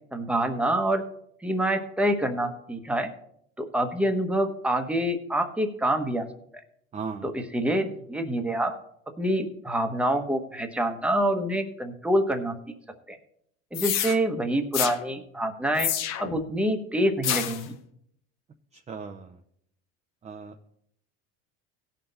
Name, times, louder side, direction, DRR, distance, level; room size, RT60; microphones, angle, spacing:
voice 1, 0.1-1.0 1.4-3.1 3.6-6.3 7.2-8.7 9.2-12.6 13.1-13.2 13.7-15.9 16.2-17.8, right 1 dB, 5° right, 6 dB, 1.1 m, -26 dB
voice 2, 6.9-7.3 18.9-19.3 20.2-20.7, right 5 dB, 20° right, 4 dB, 0.6 m, -37 dB
sound 1, 13.7-14.2 14.7-15.0 15.8-16.4 17.2-17.6, left 10 dB, 60° left, 1.1 m, -28 dB
16.5 x 5.9 x 4.1 m, 0.70 s
supercardioid pair, 120°, 30 cm